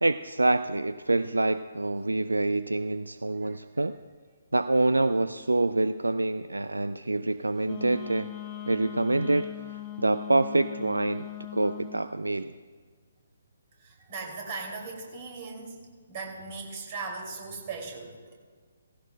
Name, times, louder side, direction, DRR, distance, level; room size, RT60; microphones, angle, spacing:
voice 1, 0.0-4.0 4.5-8.3 8.7-9.5 10.0-11.3 11.5-12.5, right 2 dB, 75° right, 12 dB, 0.3 m, -26 dB
Wind instrument woodwind instrument, 7.6-12.0, left 12 dB, 20° left, 1.0 m, -40 dB
voice 2, 13.8-15.8 16.1-18.3, right 4 dB, 35° right, 0 dB, 2.4 m, -38 dB
17.5 x 16.0 x 2.2 m, 1.5 s
figure-of-eight pair, 135°, 0 cm